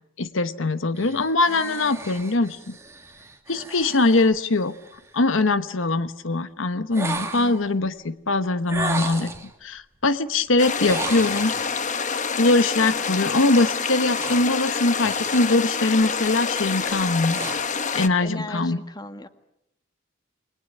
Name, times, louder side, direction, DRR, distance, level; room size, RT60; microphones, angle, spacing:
voice 1, 0.2-2.8 3.5-4.7 5.1-9.3 9.6-11.5 12.4-17.4 17.9-18.8, left 2 dB, 80° left, 12 dB, 1.1 m, -22 dB
sound 1, 1.0-5.2 6.9-7.7 8.7-9.5 10.7-11.8 13.5-15.6 15.9-16.3 16.8-17.9, right 3 dB, 15° right, 2.8 m, -35 dB
voice 2, 7.3-7.6 18.2-19.3, left 1 dB, 20° left, 8 dB, 1.7 m, -36 dB
sound 2, 10.6-18.1, left 5 dB, 40° left, 1.2 m, -27 dB
29.5 x 22.0 x 8.7 m, 0.84 s
head